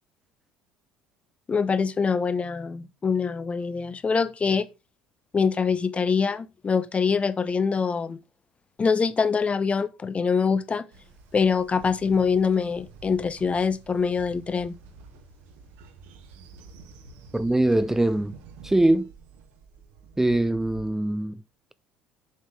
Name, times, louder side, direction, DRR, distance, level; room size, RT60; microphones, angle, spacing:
voice 1, 1.5-4.7 5.3-8.2 8.8-10.9 11.3-14.7, left 5 dB, 25° left, 0.7 m, -24 dB
Train, 10.9-20.9, right 5 dB, 65° right, 1.4 m, -49 dB
voice 2, 17.3-18.3 18.6-19.1 20.2-21.4, right 1 dB, 10° right, 0.5 m, -22 dB
7.5 x 5.5 x 4.5 m
figure-of-eight pair, 60°, 5 cm